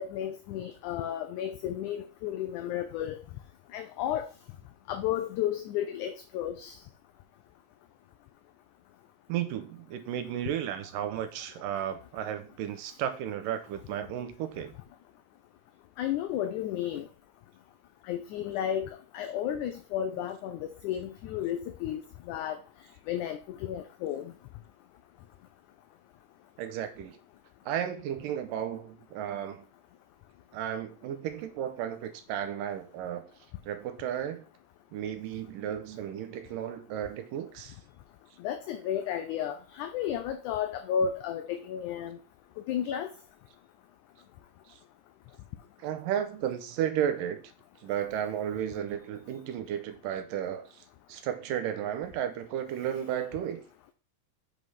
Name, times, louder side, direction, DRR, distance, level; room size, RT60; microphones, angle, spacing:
voice 1, 0.0-3.2 3.7-4.3 4.9-6.8 16.0-17.1 18.0-22.6 23.1-24.3 38.4-42.2 42.6-43.1, left 9 dB, 75° left, 1.9 m, -33 dB
voice 2, 9.3-14.7 26.6-27.2 27.7-29.6 30.5-33.3 33.7-34.4 34.9-37.7 45.8-47.4 47.8-50.7 51.1-53.6, right 10 dB, 75° right, 2.4 m, -33 dB
6.1 x 5.3 x 5.5 m
omnidirectional pair, 4.1 m